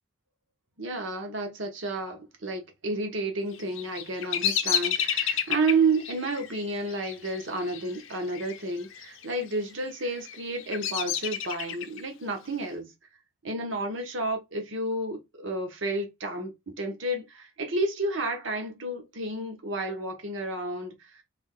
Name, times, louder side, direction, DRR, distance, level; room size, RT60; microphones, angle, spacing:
voice 1, 0.8-12.9 13.4-21.2, right 2 dB, 65° right, 1.0 m, -31 dB
Bird vocalization bird call bird song, 3.5-8.6 8.8-9.4 10.0-12.0, left 9 dB, 70° left, 0.5 m, -30 dB
3.4 x 2.3 x 3.7 m
head